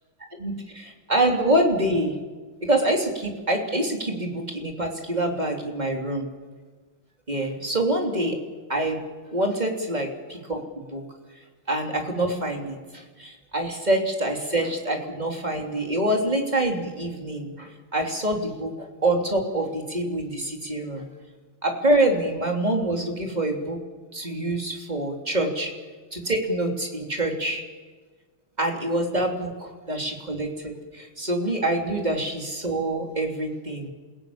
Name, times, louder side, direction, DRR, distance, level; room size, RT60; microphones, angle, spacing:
voice 1, 0.3-2.2 2.6-6.3 7.3-8.4 8.7-9.0 9.3-11.0 11.7-21.1 21.6-23.8 24.1-25.7 26.1-27.6 28.6-33.9, right 1 dB, 20° right, 2 dB, 3.1 m, -26 dB
28.5 x 16.5 x 8.7 m, 1.4 s
omnidirectional pair, 2.4 m